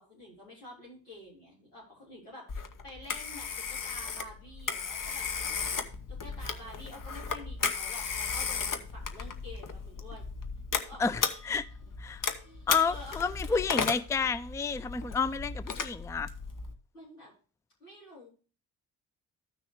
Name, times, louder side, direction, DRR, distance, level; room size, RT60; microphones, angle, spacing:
voice 1, 0.0-5.7 6.1-10.2 10.7-11.9 12.4-13.6 16.9-17.3 17.8-18.3, left 1 dB, 90° left, 4.2 m, -49 dB
Telephone, 2.5-16.7, left 5 dB, 45° left, 1.2 m, -35 dB
voice 2, 11.0-11.7 12.0-12.2 12.7-16.3, left 5 dB, 5° left, 0.4 m, -30 dB
14.0 x 6.3 x 3.1 m
hypercardioid pair, 40°, 44 cm